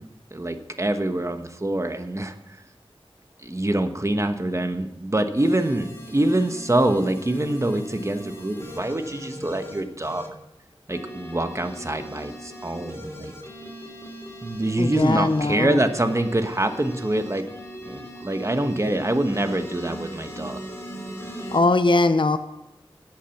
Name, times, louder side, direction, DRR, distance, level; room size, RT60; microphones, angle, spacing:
voice 1, 0.3-2.3 3.4-10.3 10.9-13.3 14.4-17.4 17.8-20.6, right 1 dB, 30° right, 7 dB, 1.2 m, -25 dB
sound 1, 5.4-10.3 10.9-21.6, equal, 25° left, 3.2 m, -39 dB
voice 2, 14.8-15.8 21.5-22.4, left 2 dB, 55° left, 9 dB, 0.8 m, -20 dB
13.0 x 8.3 x 5.9 m, 0.92 s
wide cardioid pair, 65°, 10 cm